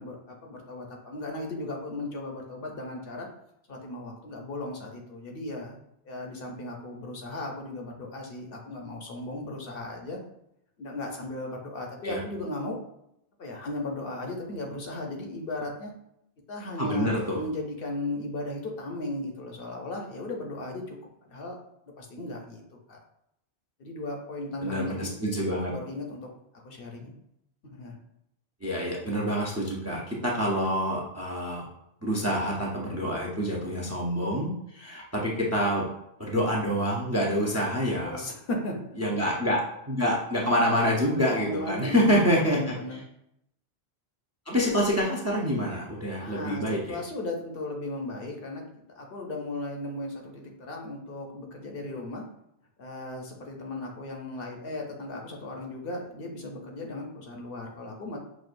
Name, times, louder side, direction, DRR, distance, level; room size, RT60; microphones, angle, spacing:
voice 1, 0.0-3.3 3.7-5.8 6.0-10.2 10.8-12.8 13.4-15.9 16.5-21.6 22.0-22.6 22.9-23.0 23.8-25.1 25.7-26.2 26.6-27.1 27.7-27.9 37.9-38.8 39.0-39.2 41.1-42.2 42.5-43.0 46.2-48.6 49.0-52.2 52.8-58.2, left 2 dB, 65° left, 1 dB, 0.9 m, -36 dB
voice 2, 16.8-17.4 24.6-25.7 28.6-31.7 32.0-35.8 36.2-38.2 39.0-39.6 39.9-42.7 44.5-47.0, equal, 20° right, -3 dB, 0.5 m, -27 dB
6.1 x 2.3 x 2.5 m, 0.77 s
omnidirectional pair, 1.1 m